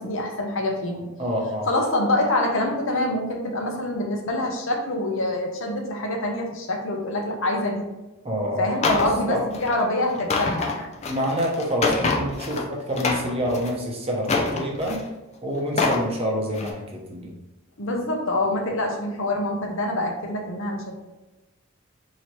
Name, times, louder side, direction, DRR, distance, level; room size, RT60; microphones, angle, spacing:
voice 1, 0.0-1.1 1.7-7.9 8.6-10.9 17.8-20.9, left 1 dB, 65° left, 1 dB, 0.7 m, -25 dB
voice 2, 1.2-1.7 8.2-9.4 11.0-15.0 15.4-17.3, equal, 30° right, -2 dB, 0.8 m, -27 dB
sound 1, 8.8-9.1 9.5-9.8 10.1-12.6 12.9-13.7 14.2-15.1 15.6-16.1 16.5-16.7, left 3 dB, 30° left, 0.5 m, -26 dB
3.1 x 2.8 x 4.3 m, 1.0 s
head